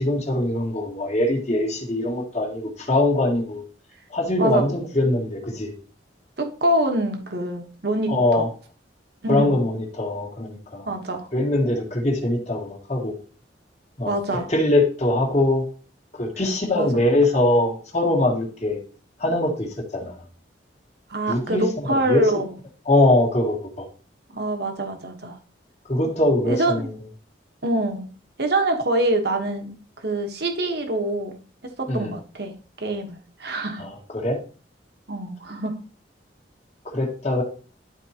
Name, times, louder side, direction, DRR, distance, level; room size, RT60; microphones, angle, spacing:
voice 1, 0.0-3.6 4.1-5.7 8.1-8.5 9.3-10.9 11.3-13.1 14.0-15.6 16.2-18.8 19.2-20.1 21.3-22.2 22.9-23.8 25.9-26.9 31.9-32.1 33.8-34.4 36.9-37.4, left 1 dB, 35° left, 0 dB, 1.8 m, -22 dB
voice 2, 6.4-8.5 9.2-9.5 10.9-11.3 14.1-14.5 16.7-17.1 21.1-22.5 24.3-25.4 26.4-26.9 27.6-28.1 28.4-31.4 31.6-33.8 35.1-35.8, right 1 dB, 60° right, 4 dB, 1.2 m, -25 dB
11.5 x 4.5 x 2.9 m, 0.38 s
head